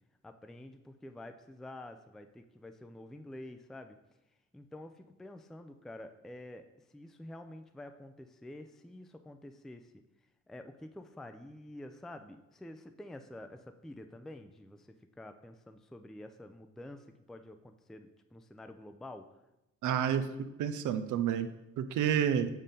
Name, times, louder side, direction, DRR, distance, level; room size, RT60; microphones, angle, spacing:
voice 1, 0.2-4.0 4.5-6.6 6.9-10.0 10.5-14.9 15.2-19.3, left 1 dB, ahead, 7 dB, 0.4 m, -48 dB
voice 2, 19.8-21.5 21.8-22.5, right 9 dB, 90° right, 11 dB, 0.5 m, -30 dB
7.4 x 2.7 x 5.2 m, 0.95 s
cardioid pair, 75°, 29 cm